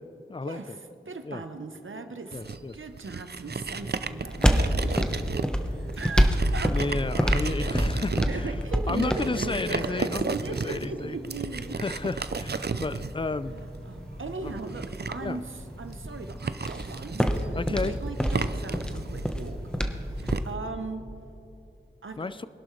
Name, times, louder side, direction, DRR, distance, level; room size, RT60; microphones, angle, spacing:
voice 1, 0.3-0.8 1.2-1.4 2.3-2.8 6.7-8.6 8.9-11.2 11.8-13.5 14.4-14.6 15.2-15.4 17.5-17.9 22.2-22.5, left 3 dB, 25° left, 14 dB, 0.4 m, -32 dB
voice 2, 1.1-2.4 2.7-5.3 5.6-6.8 8.3-11.8 13.4-19.6 20.2-21.0 22.0-22.3, right 3 dB, 85° right, 7 dB, 0.9 m, -38 dB
sound 1, 2.3-20.4, right 5 dB, 55° right, 0.5 m, -35 dB
sound 2, 3.5-20.5, equal, 5° left, 1.0 m, -29 dB
23.5 x 11.5 x 3.2 m, 2.8 s
wide cardioid pair, 50°, 20 cm